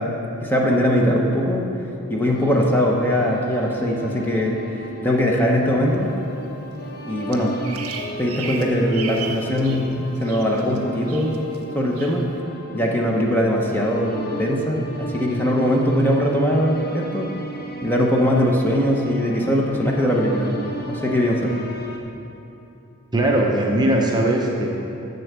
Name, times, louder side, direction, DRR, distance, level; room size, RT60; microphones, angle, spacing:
voice 1, 0.0-1.7 2.1-4.6 5.0-6.1 7.0-7.5 8.2-11.4 11.7-12.3 12.7-17.3 17.8-20.5 20.9-21.5, equal, 10° left, -1 dB, 0.9 m, -21 dB
sound 1, 2.3-22.0, equal, 45° left, 0.9 m, -36 dB
Bird vocalization bird call bird song, 7.3-9.9 10.2-10.8 11.1-11.6 11.9-12.2, right 6 dB, 70° right, 0.9 m, -35 dB
voice 2, 23.1-24.7, right 1 dB, 20° right, -1 dB, 0.8 m, -19 dB
7.8 x 6.9 x 6.7 m, 2.8 s
head